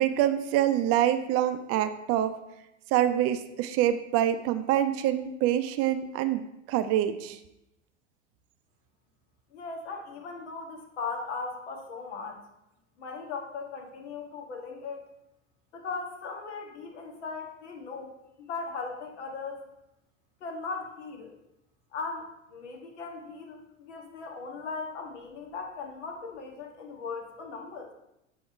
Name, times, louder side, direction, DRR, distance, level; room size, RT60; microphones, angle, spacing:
voice 1, 0.0-2.4 2.9-7.4, right 11 dB, 40° right, 10 dB, 0.5 m, -26 dB
voice 2, 9.5-12.4 13.0-15.1 15.7-19.7 20.4-21.3 21.9-27.9, left 4 dB, 70° left, 2 dB, 1.5 m, -38 dB
7.7 x 3.5 x 4.8 m, 0.88 s
hypercardioid pair, 85°, 36 cm